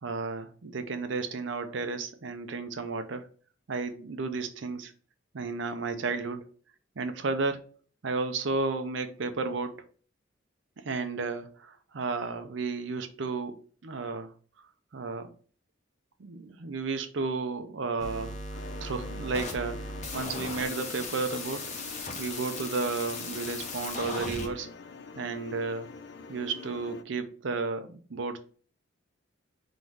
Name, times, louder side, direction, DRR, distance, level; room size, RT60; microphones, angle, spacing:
voice 1, 0.0-3.3 3.7-4.9 5.3-6.5 7.0-7.7 8.0-9.8 10.8-14.3 14.9-15.3 16.2-21.7 22.2-24.7 25.2-25.9 26.3-28.4, right 4 dB, 65° right, 9 dB, 0.6 m, -33 dB
sound 1, 18.0-24.5, left 2 dB, 35° left, 0.7 m, -37 dB
sound 2, 18.5-27.0, left 5 dB, 60° left, 0.4 m, -46 dB
3.8 x 2.6 x 4.6 m, 0.42 s
head